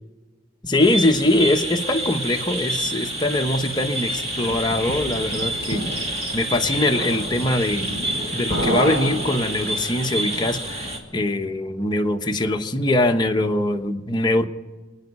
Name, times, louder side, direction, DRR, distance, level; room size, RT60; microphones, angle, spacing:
voice 1, 0.6-5.8 6.3-7.9 8.3-14.4, left 1 dB, 20° left, 3 dB, 1.1 m, -22 dB
sound 1, 0.8-11.0, right 1 dB, 35° right, 2.6 m, -28 dB
sound 2, 4.0-9.9, equal, 55° right, 3.9 m, -30 dB
27.5 x 9.8 x 5.4 m, 1.3 s
head